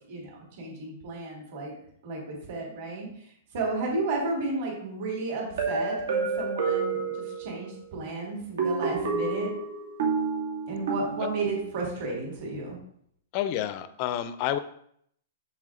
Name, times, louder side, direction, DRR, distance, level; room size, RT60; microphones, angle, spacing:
voice 1, 0.1-1.7 2.0-3.1 3.5-9.5 10.7-12.8, right 3 dB, 40° right, -1 dB, 3.7 m, -33 dB
sound 1, 5.6-7.8 8.6-11.7, right 4 dB, 75° right, 2.6 m, -29 dB
voice 2, 13.3-14.6, left 11 dB, 30° left, 12 dB, 0.5 m, -29 dB
7.8 x 7.5 x 3.8 m, 0.67 s
supercardioid pair, 180°, 0 cm